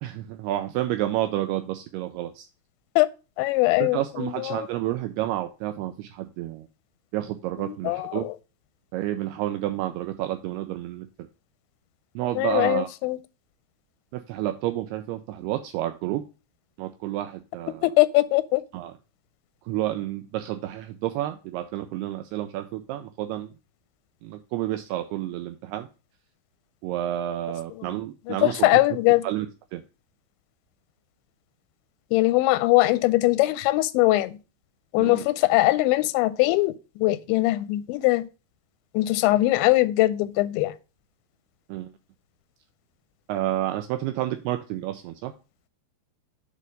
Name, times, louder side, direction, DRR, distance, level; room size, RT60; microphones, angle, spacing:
voice 1, 0.0-2.5 3.8-6.7 7.1-8.3 8.9-11.3 12.2-12.9 14.1-16.3 16.8-17.9 18.7-18.9 19.6-23.5 24.2-25.9 26.8-28.8 29.2-29.5 29.7-29.8 35.0-35.3 41.7-41.9 43.3-45.3, right 13 dB, 85° right, 2.3 m, -30 dB
voice 2, 3.4-4.7 7.9-8.3 12.4-13.2 17.8-18.6 28.3-29.2 32.1-34.4 34.9-38.2 38.9-40.7, left 19 dB, 90° left, 2.9 m, -21 dB
8.4 x 4.0 x 5.2 m
omnidirectional pair, 5.1 m